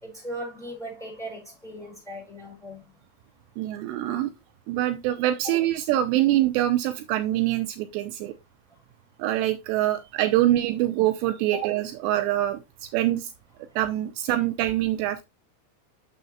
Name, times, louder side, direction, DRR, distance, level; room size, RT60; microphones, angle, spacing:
voice 1, 0.0-2.8 4.1-4.2 11.5-11.6, equal, ahead, 3.6 m, -38 dB
voice 2, 3.6-4.3 4.7-8.3 9.2-13.3 13.8-15.2, right 14 dB, 85° right, 2.7 m, -24 dB
6.5 x 6.4 x 2.7 m
omnidirectional pair, 5.0 m